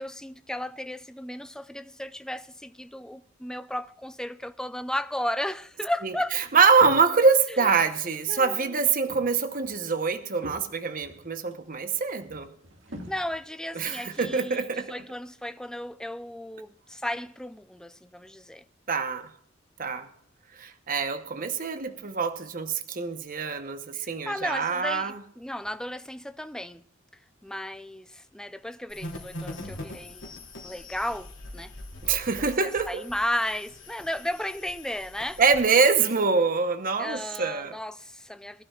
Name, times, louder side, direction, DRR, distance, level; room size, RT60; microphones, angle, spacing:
voice 1, 0.0-6.4 7.5-7.7 8.3-8.8 13.1-18.6 23.9-26.8 27.4-30.3 30.6-31.7 32.4-35.4 37.0-38.6, left 1 dB, 5° left, 0.4 m, -34 dB
sound 1, 5.7-7.4 7.7-8.4 8.7-14.7, right 1 dB, 70° right, 2.0 m, -47 dB
voice 2, 6.5-12.5 13.7-14.9 18.9-19.3 19.8-20.1 20.6-25.2 32.0-33.0 35.4-37.8, right 5 dB, 45° right, 0.9 m, -24 dB
sound 2, 28.9-35.6, left 1 dB, 65° left, 3.2 m, -42 dB
22.0 x 12.0 x 2.4 m
head